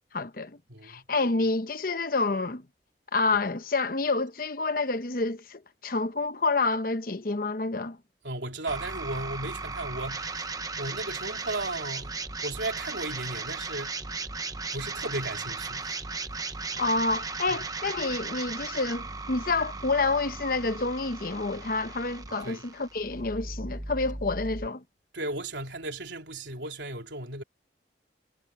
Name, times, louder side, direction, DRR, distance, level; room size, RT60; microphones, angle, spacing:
voice 1, 0.1-2.6 3.1-8.0 16.8-24.8, left 3 dB, 50° left, 0.9 m, -28 dB
voice 2, 0.7-1.0 8.2-10.5 10.8-12.2 12.4-13.9 14.7-16.0 17.5-17.6 22.4-22.6 25.1-27.4, right 2 dB, 80° right, 3.7 m, -35 dB
sound 1, 8.7-24.7, right 3 dB, 20° right, 0.9 m, -36 dB
head